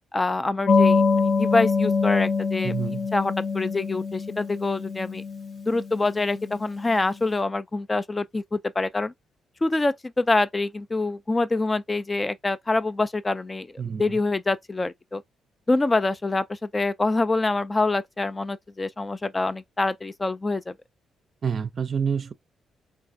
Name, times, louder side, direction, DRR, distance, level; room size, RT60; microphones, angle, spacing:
voice 1, 0.1-2.7 3.1-5.2 5.6-9.1 9.6-15.2 15.7-20.7, left 3 dB, 25° left, 0.3 m, -25 dB
sound 1, 0.7-6.9, left 4 dB, 50° left, 0.7 m, -25 dB
voice 2, 2.6-3.1 13.8-14.2 21.4-22.3, right 6 dB, 50° right, 0.4 m, -28 dB
3.2 x 2.3 x 2.6 m
supercardioid pair, 60°, 0 cm